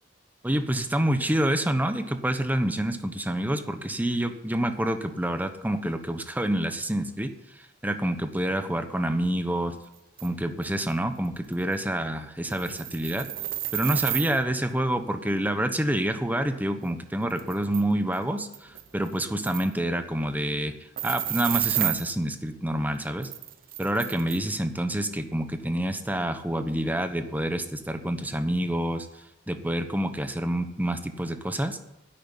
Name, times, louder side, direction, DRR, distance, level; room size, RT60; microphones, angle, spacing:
voice 1, 0.4-7.3 7.8-9.8 10.2-13.3 13.7-20.7 21.0-23.3 23.8-29.1 29.5-31.8, right 1 dB, 10° right, 8 dB, 1.1 m, -27 dB
sound 1, 10.2-10.3 10.6-10.7 11.2-11.3 11.5-11.7 12.4-14.4 16.8-16.9 17.3-17.8 18.1-18.2 18.5-19.1 19.4-19.7 21.0-22.1 23.2-24.4, right 13 dB, 50° right, 0.8 m, -31 dB
11.0 x 8.8 x 9.8 m, 0.86 s
head